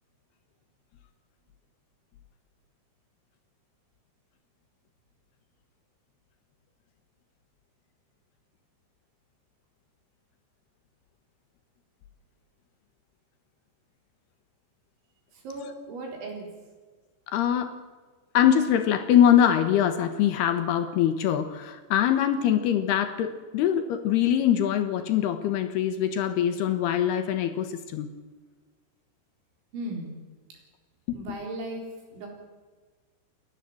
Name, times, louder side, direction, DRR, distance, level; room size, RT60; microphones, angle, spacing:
voice 1, 15.3-16.5 29.7-30.2 31.1-32.3, right 2 dB, 65° right, 1 dB, 6.5 m, -36 dB
voice 2, 17.3-17.7 18.3-28.1 31.1-31.4, left 10 dB, 75° left, 9 dB, 2.6 m, -23 dB
28.5 x 11.5 x 7.8 m, 1.4 s
omnidirectional pair, 5.8 m